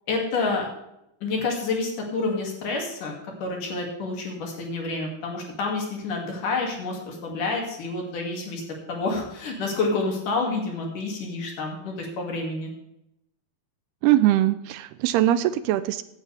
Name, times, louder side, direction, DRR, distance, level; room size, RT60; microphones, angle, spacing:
voice 1, 0.1-0.7 1.2-8.6 8.9-12.7, left 3 dB, 55° left, 0 dB, 3.8 m, -28 dB
voice 2, 14.0-16.0, right 13 dB, 85° right, 14 dB, 2.5 m, -21 dB
16.5 x 10.0 x 3.5 m, 0.83 s
omnidirectional pair, 4.7 m